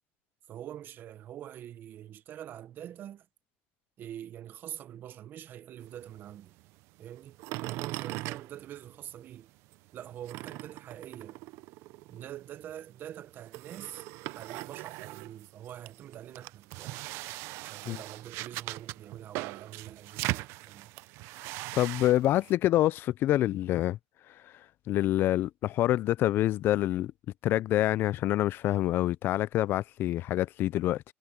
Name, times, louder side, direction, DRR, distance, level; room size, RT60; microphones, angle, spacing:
voice 1, 0.5-3.3 4.0-6.5 7.0-9.5 9.9-11.4 12.1-14.0 14.3-17.0 17.6-20.9, right 11 dB, 45° right, 1.1 m, -45 dB
sound 1, 5.8-9.3 9.7-22.5, right 20 dB, 70° right, 0.6 m, -40 dB
voice 2, 21.7-24.0 24.9-27.1 27.4-31.0, left 14 dB, 50° left, 0.5 m, -26 dB
cardioid pair, 120°, 5 cm